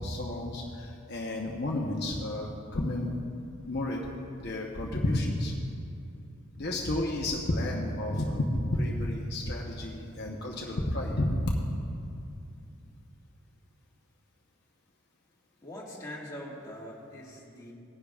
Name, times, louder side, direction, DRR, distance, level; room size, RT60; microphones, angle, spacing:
voice 1, 0.0-3.1 3.7-4.0 4.4-5.5 6.6-11.4, left 1 dB, 50° left, -2 dB, 0.9 m, -31 dB
voice 2, 15.6-17.7, left 1 dB, 15° left, -5 dB, 1.8 m, -42 dB
19.0 x 10.5 x 2.4 m, 2.5 s
head